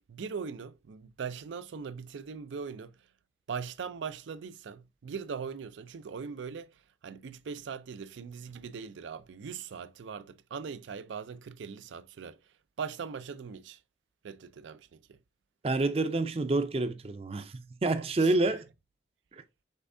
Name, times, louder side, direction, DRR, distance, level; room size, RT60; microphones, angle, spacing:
voice 1, 0.0-3.1 3.5-13.8 14.2-15.2 18.2-18.3, right 6 dB, 90° right, 0.4 m, -40 dB
voice 2, 15.6-18.7 19.3-19.4, right 2 dB, 30° right, 0.4 m, -28 dB
5.5 x 3.5 x 2.6 m
head